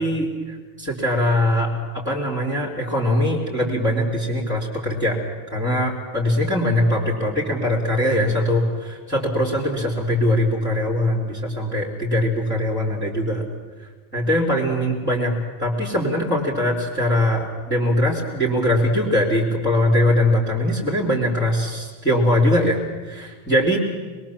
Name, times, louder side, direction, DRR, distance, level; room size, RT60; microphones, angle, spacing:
voice 1, 0.0-5.2 5.5-13.4 14.1-23.8, left 1 dB, 10° left, -6 dB, 3.7 m, -21 dB
25.0 x 22.0 x 7.4 m, 1.4 s
omnidirectional pair, 1.1 m